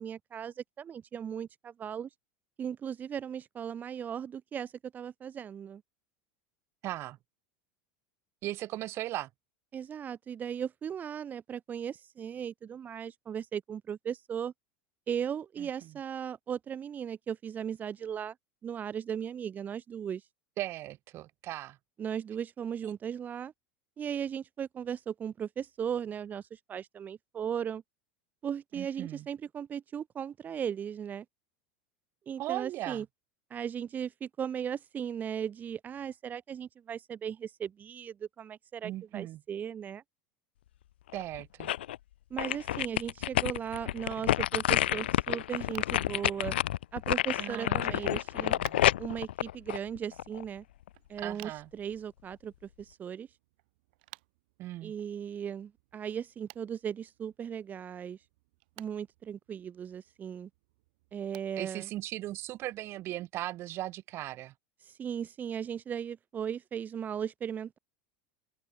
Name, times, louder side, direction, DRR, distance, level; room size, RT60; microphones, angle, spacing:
voice 1, 0.0-2.1 2.6-5.8 9.7-14.5 15.1-18.3 18.6-20.2 22.0-23.5 24.0-27.8 28.4-31.3 32.3-33.1 33.5-40.0 42.3-46.6 46.9-48.6 49.0-50.6 51.1-53.3 54.8-58.2 58.8-60.5 61.1-61.9 64.9-67.8, right 8 dB, 30° right, 2.4 m, -37 dB
voice 2, 6.8-7.2 8.4-9.3 15.6-16.0 20.6-21.8 22.8-22.9 28.7-29.3 32.4-33.0 38.8-39.4 41.1-41.7 47.4-48.1 48.4-48.9 51.2-51.7 54.6-54.9 61.6-64.5, right 15 dB, 45° right, 1.1 m, -38 dB
sound 1, 41.1-42.0 42.4-50.4 50.9-51.0, left 13 dB, 85° left, 0.5 m, -29 dB
sound 2, 45.5-62.8, right 22 dB, 70° right, 5.4 m, -59 dB
open air
hypercardioid pair, 100°, 6 cm